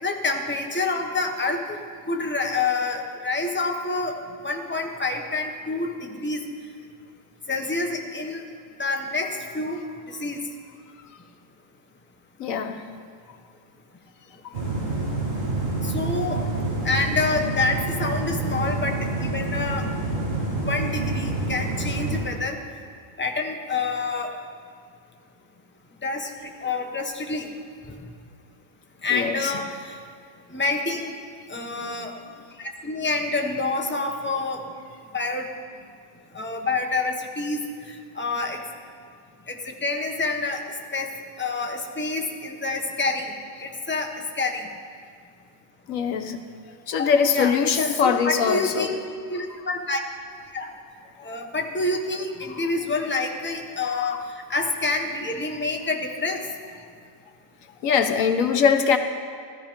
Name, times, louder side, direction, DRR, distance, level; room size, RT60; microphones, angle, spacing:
voice 1, 0.0-1.8 2.1-4.1 4.4-6.4 7.5-8.4 8.8-10.4 15.8-16.4 16.8-19.9 20.7-22.6 23.2-24.3 26.0-27.5 29.0-30.0 30.5-31.1 31.5-32.1 32.6-34.7 35.1-35.5 36.3-38.6 39.5-40.6 40.9-41.1 41.4-44.7 46.9-49.0 49.3-50.0 50.5-50.7 51.2-56.4, left 3 dB, 10° left, 2 dB, 1.0 m, -27 dB
voice 2, 12.4-12.8 29.1-29.6 45.9-46.4 46.9-48.9 51.2-51.3 53.9-54.2 57.8-59.0, left 6 dB, 90° left, 7 dB, 1.3 m, -22 dB
sound 1, 14.5-22.2, right 2 dB, 45° right, 4.0 m, -27 dB
15.0 x 13.5 x 5.1 m, 2.2 s
omnidirectional pair, 1.4 m